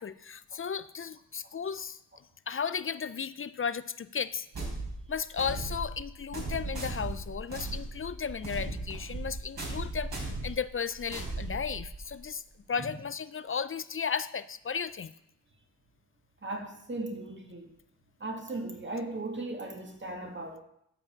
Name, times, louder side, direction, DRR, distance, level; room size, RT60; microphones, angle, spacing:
voice 1, 0.0-2.0 2.5-4.5 5.1-12.4 12.7-15.1, left 6 dB, 30° left, 15 dB, 0.4 m, -35 dB
sound 1, 4.5-12.2, right 2 dB, 60° right, 4.3 m, -37 dB
voice 2, 16.4-17.7 18.2-20.6, right 2 dB, 25° right, 3 dB, 1.9 m, -37 dB
9.8 x 4.9 x 7.2 m, 0.75 s
cardioid pair, 65°, 41 cm